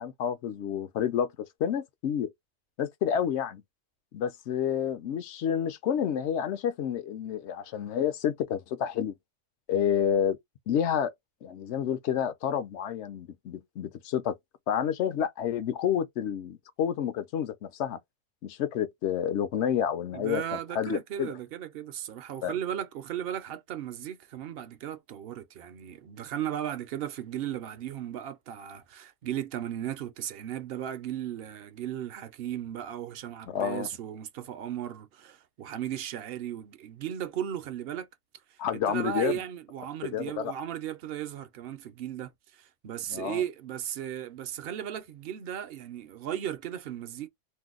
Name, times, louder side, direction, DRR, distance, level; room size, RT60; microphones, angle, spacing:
voice 1, 0.0-1.3 1.6-2.3 2.8-3.6 4.1-9.1 9.7-10.4 10.7-11.1 11.4-14.4 14.7-18.0 18.4-21.3 22.4-22.5 33.5-33.9 38.6-39.4 40.1-40.5 43.1-43.4, left 9 dB, 70° left, 0.8 m, -29 dB
voice 2, 20.1-38.1 38.7-47.3, right 10 dB, 60° right, 0.7 m, -36 dB
2.6 x 2.2 x 3.6 m
omnidirectional pair, 1.3 m